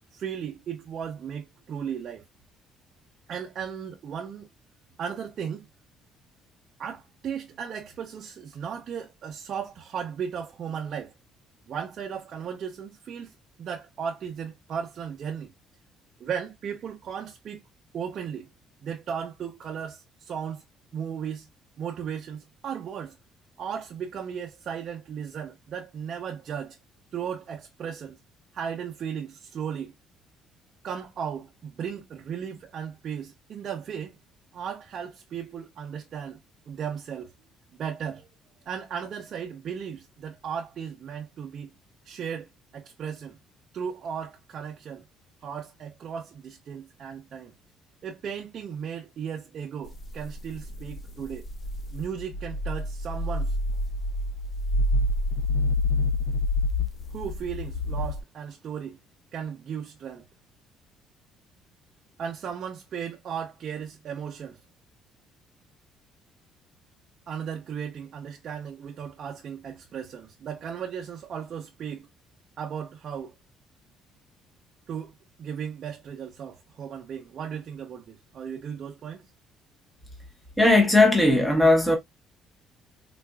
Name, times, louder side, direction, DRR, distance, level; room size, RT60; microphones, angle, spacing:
voice 1, 0.1-2.2 3.3-4.5 5.0-5.7 6.8-11.1 11.7-13.3 13.6-15.5 16.2-17.6 17.9-18.5 18.8-20.6 20.9-21.5 21.8-23.2 23.6-26.8 27.1-28.2 28.5-29.9 30.8-34.2 34.5-36.4 36.7-37.3 37.8-38.3 38.7-41.7 42.0-43.4 43.7-45.0 45.4-47.5 48.0-51.5 51.9-53.6 57.1-59.0 59.3-60.2 62.2-64.6 67.3-72.1 72.6-73.3 74.9-75.1 75.4-79.3, right 7 dB, 40° right, 0.5 m, -36 dB
sound 1, 49.9-58.2, left 2 dB, 30° left, 0.4 m, -28 dB
voice 2, 80.6-82.0, left 2 dB, 5° left, 0.9 m, -18 dB
3.9 x 2.4 x 2.2 m
cardioid pair, 165°, 0 cm